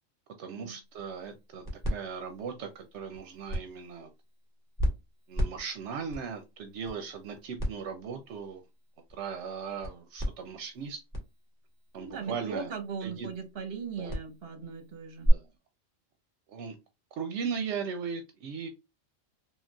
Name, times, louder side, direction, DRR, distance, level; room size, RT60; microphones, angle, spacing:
voice 1, 0.4-1.6 1.9-4.1 5.3-8.6 9.1-11.0 11.9-12.7 13.0-13.3 14.0-14.1 15.3-15.5 16.5-16.8 17.1-18.7, right 6 dB, 80° right, 6 dB, 0.9 m, -38 dB
sound 1, 0.8-15.3, equal, 15° left, 1.4 m, -37 dB
voice 2, 11.9-15.3, right 5 dB, 60° right, 5 dB, 1.1 m, -39 dB
3.7 x 2.3 x 2.3 m, 0.24 s
omnidirectional pair, 1.2 m